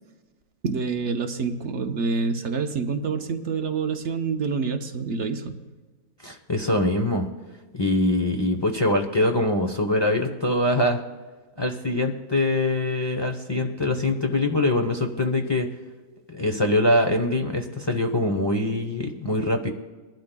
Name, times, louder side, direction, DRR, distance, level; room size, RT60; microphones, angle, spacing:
voice 1, 0.6-5.6, right 5 dB, 55° right, 5 dB, 0.9 m, -27 dB
voice 2, 6.2-7.3 7.7-11.0 11.6-15.7 16.3-19.7, left 1 dB, 25° left, 2 dB, 0.5 m, -23 dB
21.5 x 12.0 x 2.3 m, 1.3 s
omnidirectional pair, 1.8 m